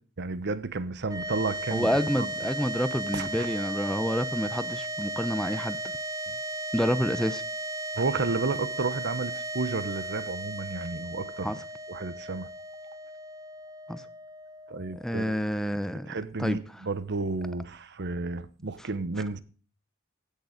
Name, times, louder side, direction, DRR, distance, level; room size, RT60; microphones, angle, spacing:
voice 1, 0.2-2.3 3.1-3.5 8.0-11.6 11.9-12.5 14.7-15.4 16.0-19.4, right 3 dB, 55° right, 0.9 m, -32 dB
sound 1, 1.0-15.5, right 1 dB, 15° right, 1.4 m, -36 dB
voice 2, 1.7-5.8 6.7-7.4 11.4-11.6 13.9-14.0 15.0-16.1 16.4-16.6, equal, ahead, 0.6 m, -28 dB
16.0 x 6.8 x 5.0 m
head